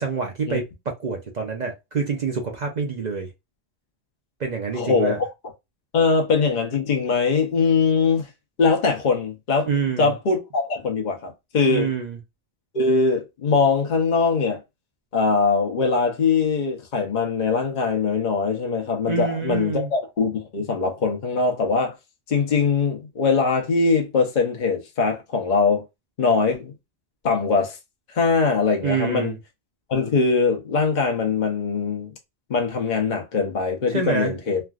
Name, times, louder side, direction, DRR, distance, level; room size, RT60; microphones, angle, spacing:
voice 1, 0.0-3.3 4.4-5.2 9.7-10.1 11.7-12.2 19.1-19.9 28.8-29.4 33.9-34.4, right 5 dB, 50° right, 0.6 m, -26 dB
voice 2, 4.8-5.2 5.9-8.3 8.6-9.7 10.0-11.9 12.7-14.6 15.1-22.0 22.3-25.8 26.2-26.7 27.2-27.8 28.1-29.3 29.9-32.1 32.5-34.6, left 4 dB, 50° left, 0.8 m, -22 dB
3.3 x 2.4 x 2.3 m
omnidirectional pair, 1.1 m